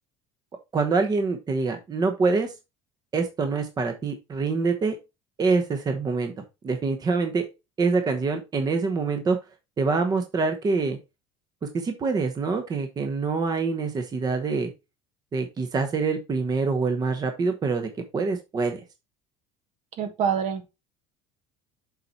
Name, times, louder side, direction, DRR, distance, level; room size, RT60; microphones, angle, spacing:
voice 1, 0.7-2.5 3.1-5.0 5.4-6.3 6.6-7.5 7.8-9.4 9.8-11.0 11.6-14.7 15.3-18.8, right 4 dB, 30° right, 6 dB, 1.0 m, -25 dB
voice 2, 20.0-20.7, right 7 dB, 55° right, 8 dB, 1.5 m, -26 dB
7.5 x 4.3 x 4.1 m, 0.25 s
cardioid pair, 120°, 14 cm